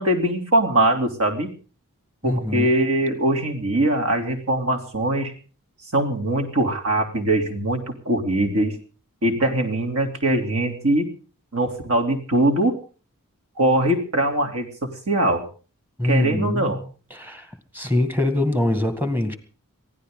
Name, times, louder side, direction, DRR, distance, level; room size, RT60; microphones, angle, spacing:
voice 1, 0.0-1.5 2.2-5.3 5.9-8.7 9.2-11.1 11.5-12.7 13.6-14.7 15.1-15.4 16.0-16.8, right 1 dB, 70° right, 4 dB, 3.2 m, -21 dB
voice 2, 2.2-2.7 16.0-16.8 17.1-17.5 17.7-19.4, left 1 dB, 10° right, 8 dB, 1.9 m, -23 dB
23.0 x 16.0 x 3.8 m, 0.38 s
head